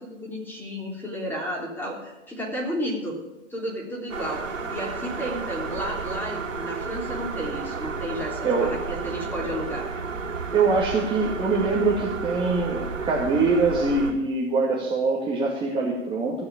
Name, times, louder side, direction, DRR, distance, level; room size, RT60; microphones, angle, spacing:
voice 1, 0.0-3.2 3.5-9.9, equal, 5° left, -2 dB, 3.5 m, -32 dB
sound 1, 4.1-14.1, right 4 dB, 80° right, 3.3 m, -32 dB
voice 2, 10.5-16.4, right 3 dB, 15° right, -4 dB, 2.1 m, -23 dB
15.5 x 6.7 x 8.7 m, 1.0 s
hypercardioid pair, 120°, 38 cm